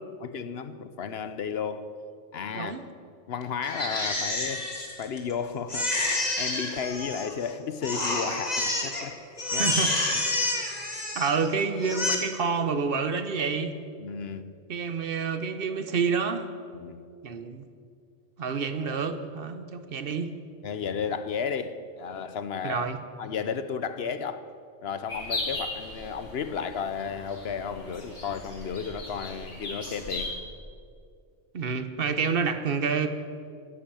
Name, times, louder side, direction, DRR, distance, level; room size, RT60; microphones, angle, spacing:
voice 1, 0.2-1.9 2.3-2.8 3.3-9.2 9.5-9.7 10.1-10.2 14.0-14.5 16.7-17.0 20.6-22.9 23.2-24.4 24.8-30.4, left 6 dB, 65° left, 12 dB, 0.9 m, -33 dB
voice 2, 2.5-2.8 9.5-10.3 11.1-13.7 14.7-16.5 17.2-17.6 18.4-20.3 22.6-23.0 31.5-33.1, right 5 dB, 55° right, 9 dB, 1.1 m, -28 dB
Crying sobbing, 3.6-5.3 5.7-7.5 7.8-9.0 9.4-11.5 11.8-12.2, left 2 dB, 35° left, 1.9 m, -29 dB
sound 1, 25.1-30.3, left 2 dB, 85° left, 3.0 m, -37 dB
11.5 x 10.0 x 8.8 m, 2.3 s
omnidirectional pair, 1.2 m